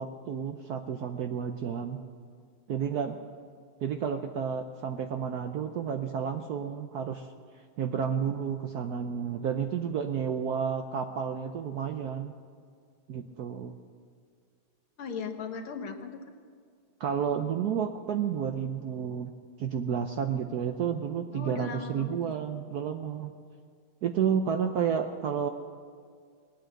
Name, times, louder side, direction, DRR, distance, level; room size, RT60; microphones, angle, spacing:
voice 1, 0.0-2.0 2.7-3.2 3.8-7.3 7.8-12.3 13.1-13.7 17.0-19.3 19.6-23.3 24.0-25.5, right 7 dB, 70° right, 6 dB, 0.9 m, -31 dB
voice 2, 15.0-16.2 21.3-22.3, left 5 dB, 80° left, 5 dB, 2.0 m, -37 dB
20.0 x 9.1 x 7.7 m, 2.1 s
omnidirectional pair, 2.3 m